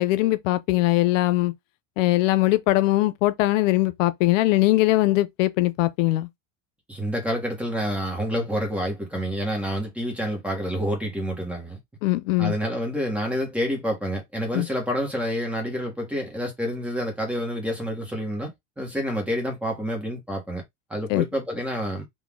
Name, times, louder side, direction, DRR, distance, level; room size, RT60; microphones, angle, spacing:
voice 1, 0.0-1.5 2.0-6.3 12.0-12.5 14.5-14.7 21.1-21.2, left 17 dB, 85° left, 0.7 m, -21 dB
voice 2, 6.9-11.8 12.4-20.6 20.9-22.1, equal, 5° right, 1.4 m, -28 dB
4.2 x 2.7 x 3.6 m
cardioid pair, 165°, 37 cm